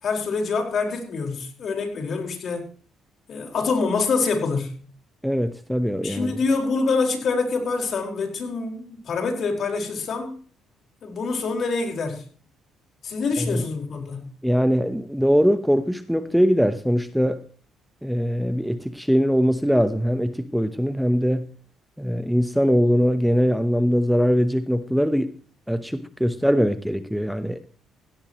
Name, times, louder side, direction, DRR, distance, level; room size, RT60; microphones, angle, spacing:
voice 1, 0.0-2.6 3.3-4.8 6.0-10.4 11.0-12.2 13.0-14.3, left 4 dB, 55° left, 4.9 m, -26 dB
voice 2, 5.2-6.3 13.4-13.6 14.4-17.4 18.0-21.5 22.0-25.3 25.7-27.6, equal, ahead, 1.0 m, -21 dB
17.0 x 16.5 x 3.1 m
cardioid pair, 90°, 0 cm